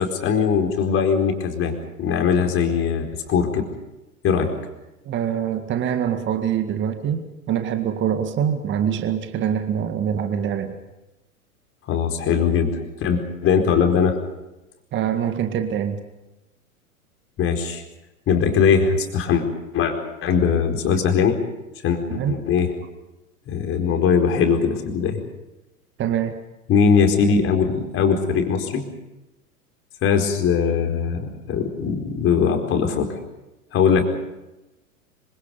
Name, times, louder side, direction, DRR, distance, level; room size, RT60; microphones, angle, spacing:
voice 1, 0.0-1.7 2.0-3.6 4.2-4.5 11.9-14.2 17.4-17.8 18.3-19.5 19.7-21.4 21.8-22.7 23.5-25.2 26.7-28.8 30.0-33.1 33.7-34.0, left 6 dB, 30° left, 4 dB, 4.5 m, -20 dB
voice 2, 5.1-10.7 14.9-16.0 22.1-22.4 26.0-26.4, right 9 dB, 25° right, 8 dB, 1.9 m, -24 dB
26.5 x 25.5 x 5.4 m, 0.99 s
figure-of-eight pair, 100°, 44 cm